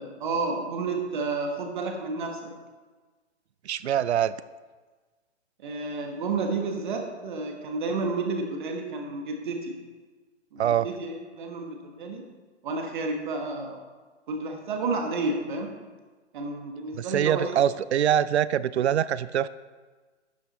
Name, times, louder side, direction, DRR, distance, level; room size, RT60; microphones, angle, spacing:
voice 1, 0.0-2.5 5.6-9.7 10.5-12.2 12.6-13.8 14.3-15.8 16.3-17.6, right 3 dB, 45° right, 3 dB, 1.4 m, -31 dB
voice 2, 3.6-4.3 10.6-10.9 17.0-19.5, right 10 dB, 70° right, 17 dB, 0.5 m, -24 dB
11.5 x 6.6 x 4.1 m, 1.3 s
figure-of-eight pair, 135°, 35 cm